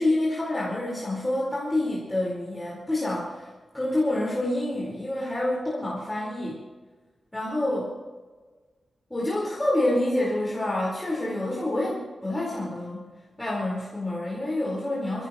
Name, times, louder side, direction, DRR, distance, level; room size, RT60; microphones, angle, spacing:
voice 1, 0.0-3.5 3.7-6.6 7.3-7.9 9.1-13.1 13.4-15.3, left 1 dB, 10° left, -6 dB, 4.7 m, -27 dB
26.5 x 17.5 x 3.1 m, 1.3 s
wide cardioid pair, 170°, 0 cm